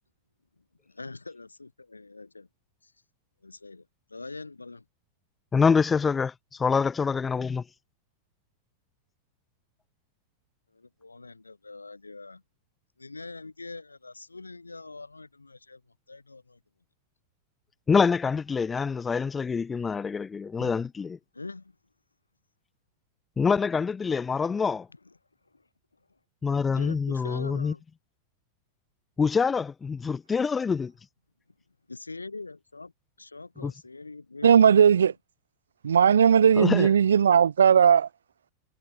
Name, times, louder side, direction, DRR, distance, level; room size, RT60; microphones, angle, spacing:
voice 1, 0.9-2.5 2.8-2.9 3.4-4.8 10.7-12.4 13.0-15.8 16.1-16.6 20.6-20.7 21.3-21.8 25.1-25.2 25.5-25.6 26.8-27.8 31.9-32.9 33.2-35.1, left 3 dB, 80° left, 2.4 m, -43 dB
voice 2, 5.5-6.3 6.6-7.6 17.9-21.2 23.4-24.9 26.4-27.7 29.2-30.9 33.6-33.7 36.6-36.9, left 5 dB, 15° left, 0.6 m, -25 dB
voice 3, 34.4-35.1 35.8-38.1, right 7 dB, 70° right, 0.3 m, -18 dB
figure-of-eight pair, 90°, 0 cm